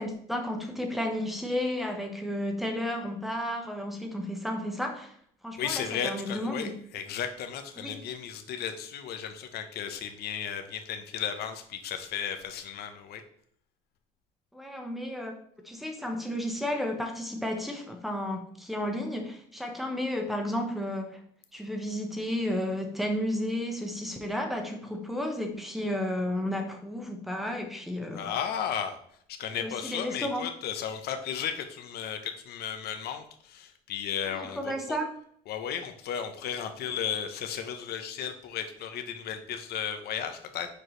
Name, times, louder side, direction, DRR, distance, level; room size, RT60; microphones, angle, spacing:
voice 1, 0.0-5.1 5.4-6.8 7.8-8.0 14.5-15.3 15.6-21.2 21.5-28.3 29.5-30.4 34.3-35.1, left 1 dB, ahead, 3 dB, 1.2 m, -32 dB
voice 2, 5.6-13.2 28.1-29.0 29.3-35.0 35.5-40.7, left 8 dB, 70° left, 7 dB, 1.0 m, -34 dB
6.7 x 4.6 x 3.3 m, 0.62 s
cardioid pair, 110°, 17 cm